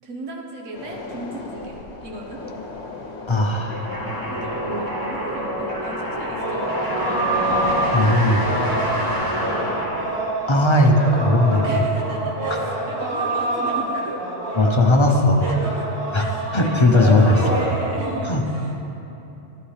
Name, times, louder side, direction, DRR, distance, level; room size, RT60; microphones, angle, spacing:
voice 1, 0.0-2.4 4.3-7.0 8.7-8.9 11.6-14.3 14.8-14.9 15.4-18.9, right 2 dB, 80° right, -1 dB, 1.5 m, -35 dB
sound 1, 0.7-15.3 15.6-15.8, left 3 dB, 65° left, 1.2 m, -41 dB
voice 2, 3.3-3.9 7.9-8.5 10.5-11.8 12.5-12.6 14.6-15.4 16.1-16.2 16.5-17.6 18.2-18.4, left 1 dB, 30° left, 2 dB, 0.5 m, -18 dB
sound 2, 3.7-10.4, equal, 15° right, 1.7 m, -26 dB
sound 3, 6.4-18.1, right 2 dB, 55° right, 2.5 m, -27 dB
11.5 x 11.0 x 3.3 m, 2.9 s
omnidirectional pair, 1.3 m